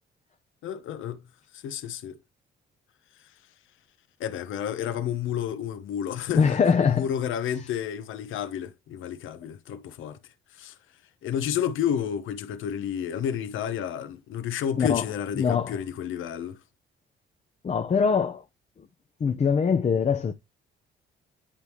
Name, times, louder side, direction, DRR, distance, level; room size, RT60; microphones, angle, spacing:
voice 1, 0.6-1.2 1.5-2.2 4.2-10.2 10.5-10.7 11.2-16.6, left 9 dB, 80° left, 1.0 m, -31 dB
voice 2, 6.3-7.1 14.8-15.0 15.3-15.8 17.6-18.4 19.2-20.3, left 6 dB, 35° left, 0.7 m, -23 dB
10.0 x 3.5 x 3.1 m
cardioid pair, 90°, 20 cm